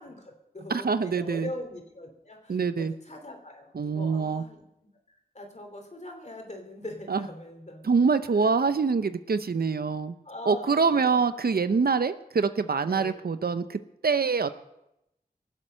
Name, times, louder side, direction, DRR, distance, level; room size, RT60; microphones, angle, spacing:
voice 1, 0.0-4.6 5.3-7.8 8.3-8.5 10.2-11.2 12.9-13.2, left 1 dB, 45° left, 3 dB, 3.0 m, -42 dB
voice 2, 0.7-1.5 2.5-2.9 3.7-4.4 7.1-7.2 7.8-10.2 10.5-14.5, right 5 dB, 70° right, 12 dB, 0.7 m, -25 dB
21.5 x 7.6 x 6.6 m, 0.86 s
wide cardioid pair, 65°, 17 cm